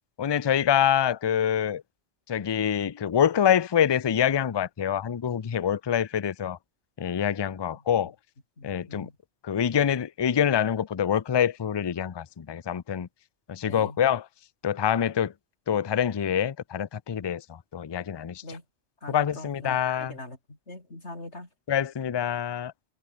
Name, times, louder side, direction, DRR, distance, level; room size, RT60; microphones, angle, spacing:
voice 1, 0.2-1.8 2.3-6.6 7.0-8.1 8.6-9.1 9.4-13.1 13.5-14.3 14.6-15.3 15.7-17.4 17.7-18.4 19.1-20.1 21.7-22.7, left 9 dB, 45° left, 0.3 m, -25 dB
voice 2, 7.7-8.1 8.6-9.2 13.6-14.0 18.4-18.6 19.0-21.5, left 2 dB, 70° left, 5.6 m, -42 dB
omnidirectional pair, 1.2 m